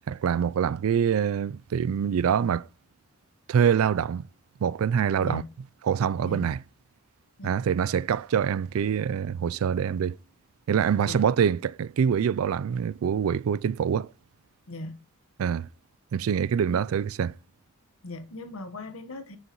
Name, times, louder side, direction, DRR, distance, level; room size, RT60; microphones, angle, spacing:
voice 1, 0.1-2.7 3.5-4.3 4.6-5.4 5.9-6.6 7.4-10.2 10.7-14.1 15.4-15.7 16.1-17.3, right 7 dB, 80° right, 0.3 m, -25 dB
voice 2, 5.2-5.5 6.2-6.5 7.4-7.6 11.0-11.3 14.7-15.0 16.7-16.9 18.0-19.4, left 2 dB, 80° left, 1.2 m, -38 dB
9.2 x 6.4 x 3.0 m
head